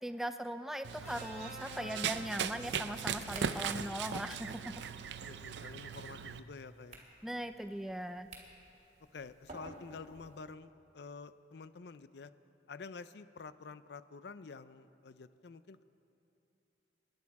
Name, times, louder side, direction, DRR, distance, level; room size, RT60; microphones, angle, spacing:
voice 1, 0.0-4.7 7.2-8.3, equal, ahead, 9 dB, 0.3 m, -39 dB
Run, 0.8-6.4, right 7 dB, 75° right, 0.5 m, -39 dB
sound 1, 1.0-3.3 4.6-4.8, left 1 dB, 40° left, 4.4 m, -50 dB
sound 2, 2.4-10.4, right 2 dB, 40° right, 2.2 m, -56 dB
voice 2, 5.2-7.0 9.1-12.3 12.7-15.8, left 4 dB, 65° left, 14 dB, 0.5 m, -49 dB
26.0 x 10.5 x 4.8 m, 2.8 s
head